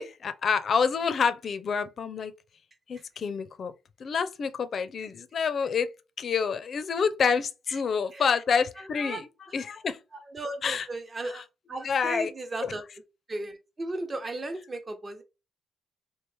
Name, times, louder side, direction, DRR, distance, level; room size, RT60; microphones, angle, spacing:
voice 1, 0.0-2.3 2.9-3.7 4.0-5.9 6.2-10.0 10.6-10.9 11.2-11.4 11.8-12.3 12.6-12.8, left 6 dB, 50° left, 0.5 m, -28 dB
voice 2, 10.3-12.8 13.3-15.2, right 2 dB, 30° right, 0.8 m, -35 dB
3.1 x 2.8 x 3.3 m
cardioid pair, 90°, 0 cm